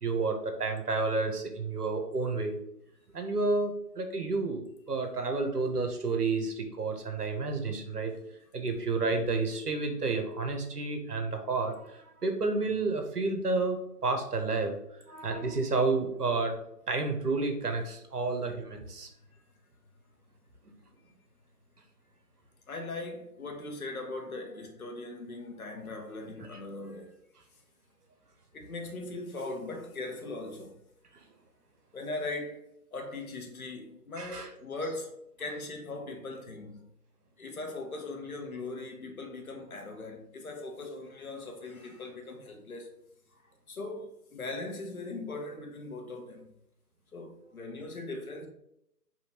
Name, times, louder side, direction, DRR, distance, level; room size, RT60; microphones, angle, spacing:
voice 1, 0.0-2.6 3.1-4.6 4.9-8.1 8.5-14.8 15.1-16.5 16.9-19.1 26.5-26.6 34.1-34.5, right 3 dB, 65° right, 1.0 m, -30 dB
voice 2, 22.7-27.2 28.5-30.8 31.9-32.6 32.9-36.9 37.4-42.9 43.7-46.5 47.1-48.5, left 2 dB, 60° left, 1.1 m, -39 dB
4.4 x 2.8 x 4.3 m
figure-of-eight pair, 155°, 49 cm